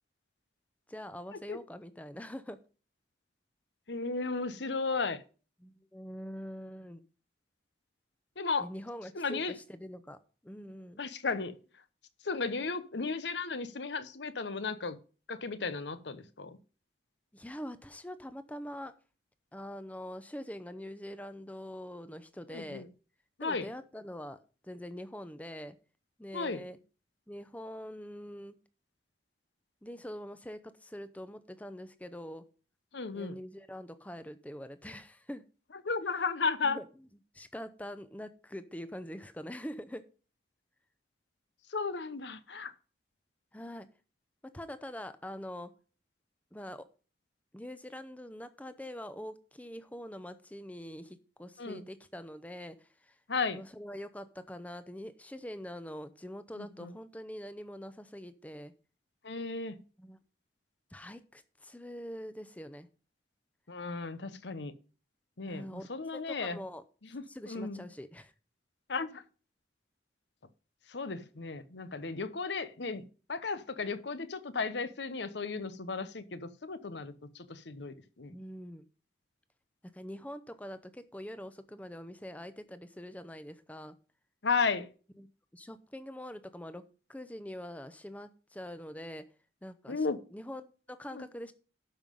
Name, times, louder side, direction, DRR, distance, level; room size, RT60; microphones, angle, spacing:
voice 1, 0.9-2.6 5.6-7.0 8.6-9.4 9.7-10.2 10.4-11.0 17.3-18.9 19.5-22.9 23.4-24.4 24.6-25.8 26.2-26.8 27.3-28.6 29.8-32.4 33.1-35.4 36.6-36.8 37.3-40.0 43.5-43.9 44.5-45.7 46.5-46.9 47.5-52.8 53.1-53.2 53.5-58.7 60.0-60.2 60.9-62.9 65.5-65.9 66.3-66.8 67.3-68.3 78.3-78.9 79.9-84.0 85.2-85.3 85.5-86.8 87.1-89.2 89.6-90.0 90.3-91.5, equal, 10° left, 12 dB, 0.7 m, -44 dB
voice 2, 3.9-5.2 8.4-8.7 9.1-9.6 11.0-11.6 12.2-15.0 15.3-16.6 22.5-22.9 23.4-23.7 26.3-26.6 32.9-33.4 35.7-36.8 41.7-42.7 51.6-51.8 53.3-53.6 56.5-56.9 59.2-59.8 63.7-64.7 65.4-66.6 67.0-67.8 68.9-69.2 70.9-78.3 84.4-84.9 89.9-90.2 91.1-91.2, left 4 dB, 75° left, 13 dB, 0.9 m, -35 dB
12.5 x 5.6 x 5.3 m, 0.36 s
head